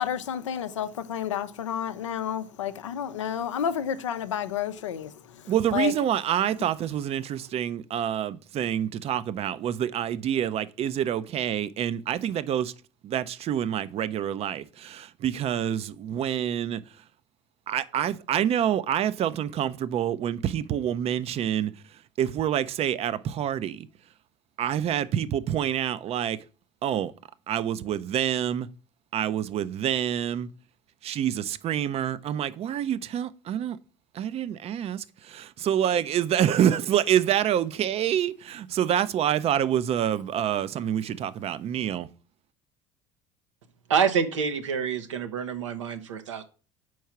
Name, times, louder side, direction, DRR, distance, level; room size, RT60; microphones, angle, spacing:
voice 1, 0.0-5.1 5.7-5.9, left 9 dB, 85° left, 0.5 m, -30 dB
voice 2, 5.5-12.7 13.0-16.8 17.7-21.7 22.2-23.9 24.6-26.4 26.8-27.1 27.5-28.7 29.1-30.5 31.0-33.8 34.1-42.1, right 10 dB, 40° right, 0.5 m, -27 dB
voice 3, 43.9-46.4, right 6 dB, 85° right, 0.7 m, -27 dB
4.6 x 4.6 x 5.7 m
hypercardioid pair, 70°, 15 cm